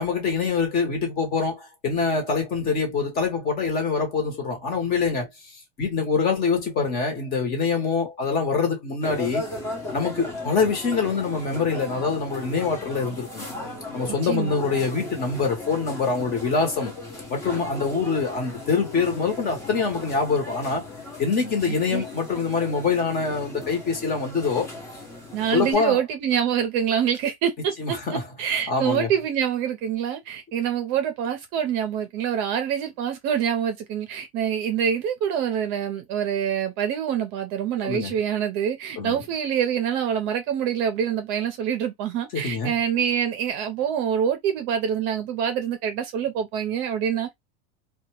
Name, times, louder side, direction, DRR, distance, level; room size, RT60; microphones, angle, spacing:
voice 1, 0.0-5.3 5.8-9.4 9.9-13.5 13.9-16.9 17.3-20.9 21.2-24.7 25.5-26.0 27.8-28.2 28.7-29.1 37.8-38.2 39.0-39.2 42.3-42.7, left 5 dB, 30° left, 1.0 m, -25 dB
sound 1, 9.0-25.7, left 2 dB, 10° left, 0.7 m, -37 dB
voice 2, 14.1-14.5 21.7-22.0 25.3-47.3, right 8 dB, 40° right, 0.6 m, -26 dB
2.3 x 2.0 x 3.0 m
supercardioid pair, 150°, 31 cm